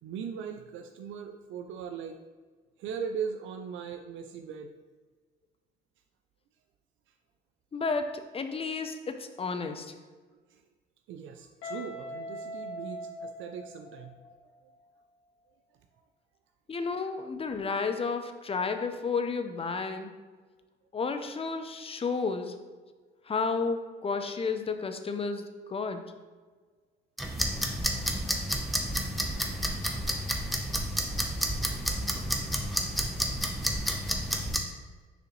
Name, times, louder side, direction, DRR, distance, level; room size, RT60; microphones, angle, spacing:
voice 1, 0.0-2.2 2.8-4.7 7.1-7.2 10.3-10.6 11.1-14.2 14.4-14.7 29.7-29.8 32.8-32.9, right 7 dB, 70° right, 5 dB, 0.5 m, -39 dB
voice 2, 7.7-9.9 16.7-20.1 20.9-22.5 23.3-26.1, left 4 dB, 30° left, 8 dB, 0.6 m, -32 dB
Guitar, 11.6-14.4, left 1 dB, 75° left, 1.8 m, -41 dB
sound 1, 27.2-34.6, equal, ahead, 0.9 m, -30 dB
6.6 x 4.8 x 3.1 m, 1.4 s
supercardioid pair, 80°, 21 cm